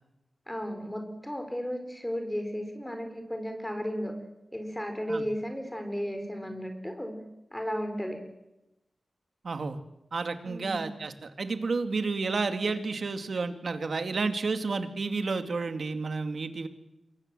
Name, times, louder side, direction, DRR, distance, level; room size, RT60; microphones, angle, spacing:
voice 1, 0.5-4.2 4.5-7.2 7.5-8.2 10.4-10.9, equal, 10° left, 5 dB, 4.6 m, -34 dB
voice 2, 9.4-9.8 10.1-16.7, right 4 dB, 70° right, 8 dB, 2.3 m, -31 dB
27.0 x 23.5 x 7.8 m, 0.94 s
wide cardioid pair, 75°, 0 cm